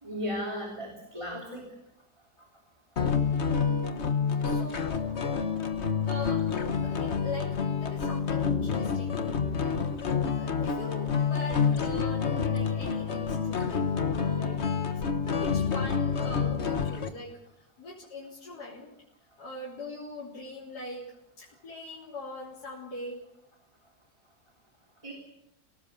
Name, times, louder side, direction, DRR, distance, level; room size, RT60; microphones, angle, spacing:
voice 1, 0.0-1.7 25.0-25.1, equal, 20° right, -2 dB, 3.5 m, -35 dB
sound 1, 3.0-17.1, left 6 dB, 45° left, 1.4 m, -28 dB
voice 2, 4.4-5.7 6.0-6.5 6.8-14.6 15.2-18.9 19.4-21.1 21.4-23.2, left 2 dB, 80° left, -6 dB, 4.2 m, -42 dB
25.0 x 18.0 x 6.8 m, 0.81 s
omnidirectional pair, 1.7 m